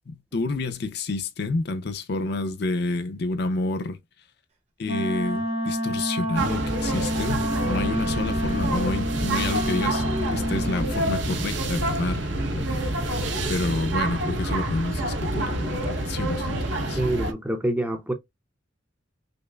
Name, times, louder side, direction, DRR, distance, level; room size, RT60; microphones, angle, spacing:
voice 1, 0.1-4.0 4.8-12.3 12.5-13.2 13.5-17.0, left 2 dB, 55° left, 0.5 m, -29 dB
Wind instrument woodwind instrument, 4.8-10.9, equal, 35° right, 0.9 m, -29 dB
sound 1, 6.4-17.3, right 1 dB, 70° right, 0.8 m, -27 dB
voice 2, 17.0-18.1, right 1 dB, 10° right, 0.5 m, -26 dB
5.2 x 2.0 x 2.2 m
head